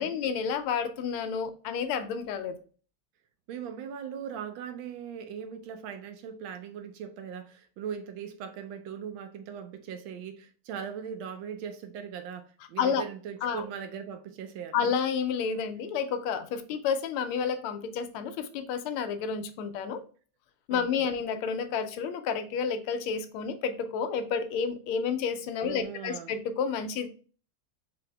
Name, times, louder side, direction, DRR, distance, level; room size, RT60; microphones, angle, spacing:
voice 1, 0.0-2.5 12.8-13.0 13.4-13.6 14.7-20.0 20.7-27.1, left 6 dB, 85° left, 1.5 m, -30 dB
voice 2, 3.5-14.9 20.7-20.9 25.6-26.3, right 8 dB, 75° right, 1.2 m, -39 dB
3.8 x 3.4 x 3.3 m
omnidirectional pair, 2.4 m